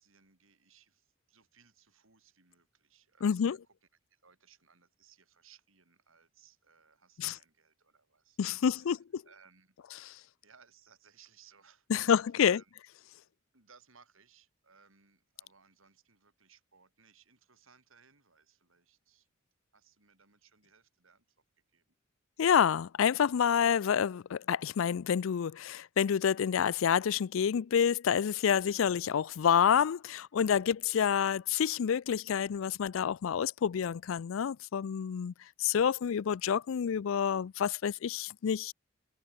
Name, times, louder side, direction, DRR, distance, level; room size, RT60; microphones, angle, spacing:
voice 1, 0.0-9.8 10.4-12.7 13.5-19.3 19.7-21.4 21.7-21.8, right 6 dB, 80° right, 5.2 m, -64 dB
voice 2, 3.2-3.6 7.2-7.3 8.4-9.2 11.9-12.6 22.4-35.3 35.6-38.7, left 8 dB, 80° left, 0.4 m, -28 dB
head